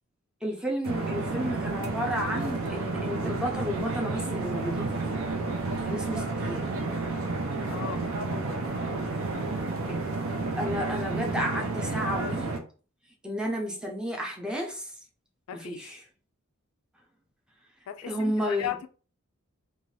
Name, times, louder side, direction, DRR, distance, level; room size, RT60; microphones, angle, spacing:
voice 1, 0.4-5.0 5.8-6.7 9.9-10.0 10.4-12.5 13.2-14.9 15.5-16.0 18.1-18.7, equal, 5° right, 0.6 m, -32 dB
sound 1, 0.8-12.6, right 3 dB, 75° right, 0.6 m, -31 dB
voice 2, 7.7-8.0 15.5-16.0 17.9-18.9, left 10 dB, 80° left, 0.3 m, -36 dB
2.6 x 2.4 x 3.1 m
head